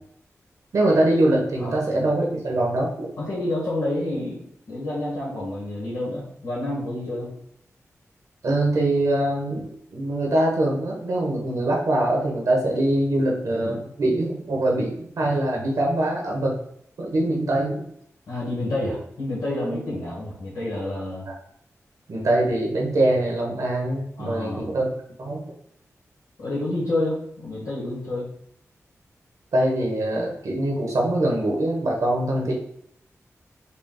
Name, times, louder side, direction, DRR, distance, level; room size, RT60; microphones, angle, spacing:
voice 1, 0.7-3.1 8.4-16.6 17.0-17.9 21.3-21.4 22.1-24.9 25.2-25.4 29.5-32.5, right 1 dB, 75° right, -1 dB, 1.0 m, -23 dB
voice 2, 3.2-7.3 18.3-21.3 24.2-24.7 26.4-28.3, left 1 dB, 85° left, -8 dB, 1.4 m, -29 dB
4.0 x 2.3 x 3.7 m, 0.69 s
wide cardioid pair, 75°, 6 cm